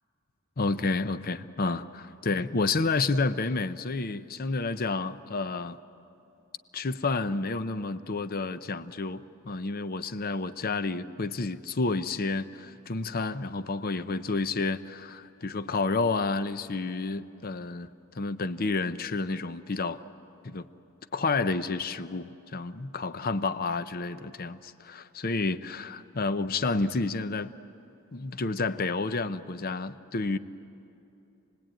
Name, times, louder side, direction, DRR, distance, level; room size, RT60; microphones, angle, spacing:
voice 1, 0.6-5.8 6.7-17.9 18.1-20.0 20.4-20.7 21.1-27.5 28.1-30.4, left 3 dB, 45° left, 13 dB, 0.7 m, -30 dB
28.0 x 20.0 x 9.0 m, 2.8 s
head